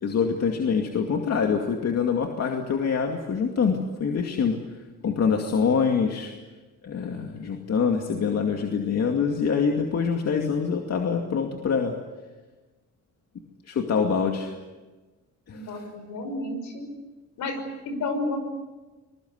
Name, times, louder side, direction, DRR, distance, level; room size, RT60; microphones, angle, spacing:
voice 1, 0.0-4.8 5.0-6.3 6.8-11.9 13.6-14.5 15.5-15.9, left 6 dB, 55° left, 2 dB, 2.5 m, -25 dB
voice 2, 15.5-16.9 17.4-17.6 17.9-18.4, left 2 dB, 75° left, 7 dB, 5.8 m, -31 dB
25.5 x 21.0 x 8.2 m, 1.2 s
cardioid pair, 90°, 30 cm